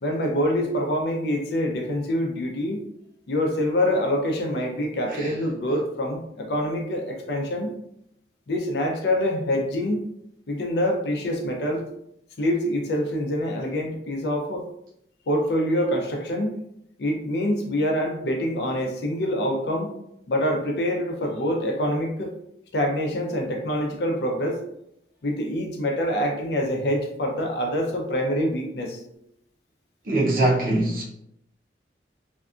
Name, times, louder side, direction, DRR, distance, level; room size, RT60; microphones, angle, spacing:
voice 1, 0.0-2.8 3.3-7.7 8.5-10.0 10.5-11.8 12.4-14.6 15.3-16.6 17.0-19.9 20.3-22.3 22.7-24.6 25.2-29.0, equal, 70° left, 1 dB, 0.5 m, -25 dB
voice 2, 30.1-31.0, right 2 dB, 50° right, -2 dB, 0.6 m, -22 dB
2.6 x 2.3 x 2.4 m, 0.77 s
head